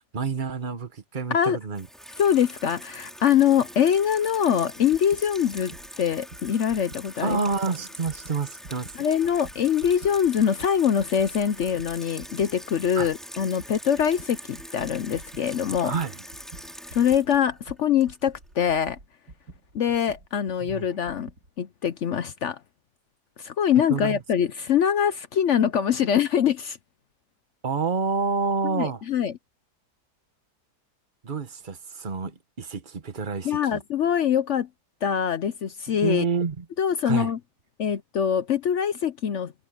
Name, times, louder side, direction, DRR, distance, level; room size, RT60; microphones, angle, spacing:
voice 1, 0.1-1.9 7.2-9.0 12.9-13.1 15.8-16.1 20.6-20.9 23.9-24.2 27.6-29.0 31.2-33.8 36.0-36.6 37.0-37.3, right 4 dB, 30° right, 1.5 m, -28 dB
Water tap faucet / Sink (filling or washing), 1.7-18.5, equal, ahead, 2.4 m, -43 dB
voice 2, 2.2-7.4 9.0-15.9 16.9-19.0 19.7-21.3 21.6-22.6 23.4-26.8 28.6-29.3 33.4-34.7 35.0-36.2 36.8-37.4 37.8-39.5, left 8 dB, 60° left, 0.8 m, -23 dB
sound 1, 4.9-7.7 8.0-21.5, right 2 dB, 65° right, 4.2 m, -47 dB
omnidirectional pair, 1.7 m